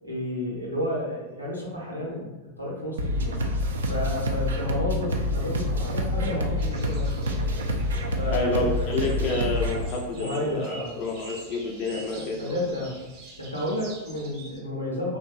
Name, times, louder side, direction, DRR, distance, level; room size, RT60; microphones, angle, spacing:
voice 1, 0.0-3.4 3.9-7.5 8.2-8.9 10.1-10.9 12.1-13.0 13.4-15.2, left 1 dB, 90° left, -5 dB, 0.7 m, -31 dB
sound 1, 3.0-9.8, left 1 dB, 65° right, 0.3 m, -27 dB
sound 2, 6.6-14.6, right 2 dB, 40° right, 0.7 m, -44 dB
voice 2, 8.3-12.6, left 3 dB, 40° left, -1 dB, 0.4 m, -29 dB
2.9 x 2.0 x 2.5 m, 1.1 s
figure-of-eight pair, 90°, 0 cm